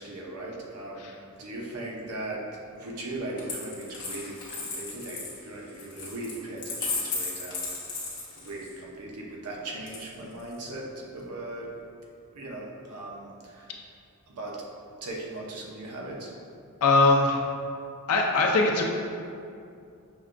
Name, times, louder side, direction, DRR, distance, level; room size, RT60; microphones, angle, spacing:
voice 1, 0.0-2.5 2.7-7.7 8.3-11.7 12.3-13.8 14.3-14.6 15.0-16.3, right 2 dB, 90° right, -2 dB, 0.7 m, -38 dB
Coin (dropping), 3.4-8.8 9.9-10.6, left 3 dB, 55° left, 0.8 m, -35 dB
voice 2, 16.8-17.4 18.1-18.8, left 3 dB, 80° left, 1 dB, 0.5 m, -21 dB
5.9 x 2.2 x 2.5 m, 2.5 s
head